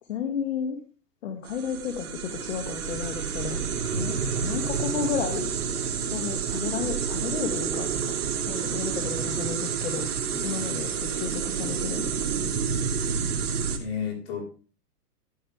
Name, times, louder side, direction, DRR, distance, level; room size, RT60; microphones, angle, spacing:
voice 1, 0.1-0.8 1.2-3.6 3.9-5.6 5.9-8.1 8.5-10.1 10.4-12.2, left 7 dB, 55° left, 5 dB, 2.0 m, -32 dB
sound 1, 1.4-13.8, right 6 dB, 65° right, 3.0 m, -29 dB
voice 2, 10.3-10.7 13.8-14.4, left 7 dB, 35° left, 1 dB, 4.3 m, -34 dB
14.5 x 8.8 x 3.4 m, 0.37 s
hypercardioid pair, 170°, 47 cm